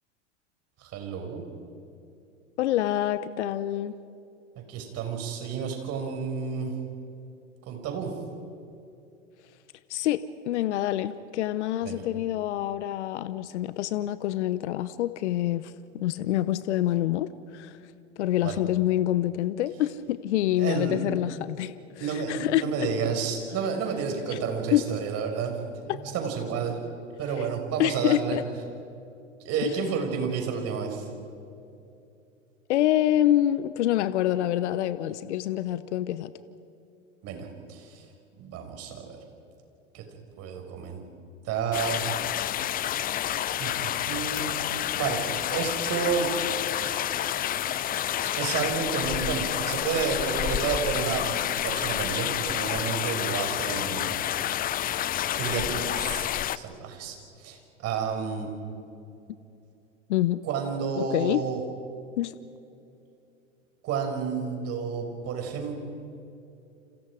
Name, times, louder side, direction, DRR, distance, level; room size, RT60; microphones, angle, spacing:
voice 1, 0.8-1.4 4.7-6.7 7.7-8.1 11.8-12.0 18.4-18.5 20.6-21.0 22.0-25.6 25.9-26.8 27.2-28.4 29.4-31.1 37.2-38.0 38.4-39.1 39.9-40.1 40.4-41.0 41.4-42.1 43.6-45.2 45.5-46.3 48.4-51.3 51.6-54.1 55.4-56.3 56.5-58.5 60.4-61.6 63.8-65.8, right 6 dB, 40° right, 3 dB, 6.1 m, -30 dB
voice 2, 2.6-3.9 9.9-17.8 18.2-22.9 24.3-24.4 24.7-24.8 25.9-26.0 27.4-27.5 27.8-28.4 29.6-29.7 32.7-36.3 60.1-60.4 61.0-61.4 62.2-62.3, left 13 dB, 65° left, 14 dB, 0.9 m, -26 dB
sound 1, 41.7-56.6, left 11 dB, 25° left, 0.6 m, -29 dB
29.5 x 27.5 x 5.0 m, 2.6 s
hypercardioid pair, 100°, 37 cm